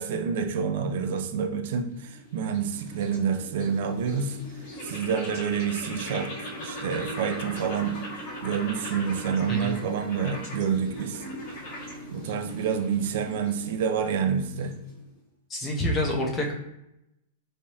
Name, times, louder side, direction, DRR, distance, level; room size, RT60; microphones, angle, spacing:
voice 1, 0.0-4.4 4.8-8.0 8.4-11.2 12.1-14.8, right 7 dB, 50° right, 6 dB, 0.4 m, -28 dB
sound 1, 1.7-15.1, equal, 40° left, 1.1 m, -40 dB
voice 2, 15.5-16.5, left 1 dB, 15° left, 0 dB, 0.6 m, -27 dB
3.5 x 3.1 x 2.8 m, 0.85 s
supercardioid pair, 170°, 0 cm